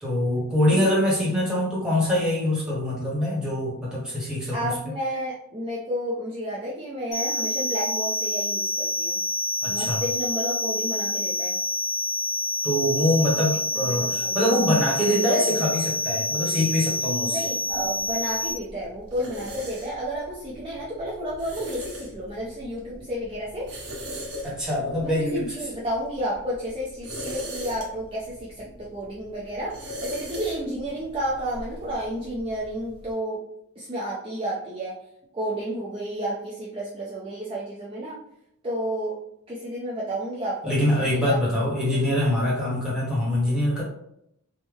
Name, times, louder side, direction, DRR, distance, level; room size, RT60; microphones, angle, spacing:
voice 1, 0.0-4.8 9.6-10.0 12.6-17.4 22.9-23.0 24.4-25.4 40.6-43.8, left 1 dB, 5° right, -7 dB, 1.1 m, -24 dB
voice 2, 4.5-9.2 9.7-11.6 13.8-14.4 17.3-23.7 25.0-33.4 33.8-35.0 35.3-38.2 38.6-39.2 39.5-41.4, equal, 25° right, -6 dB, 0.4 m, -31 dB
sound 1, 7.1-18.5, left 1 dB, 25° left, 1.1 m, -27 dB
sound 2, 17.6-33.1, equal, 80° right, 1.0 m, -40 dB
3.4 x 2.1 x 3.4 m, 0.77 s
head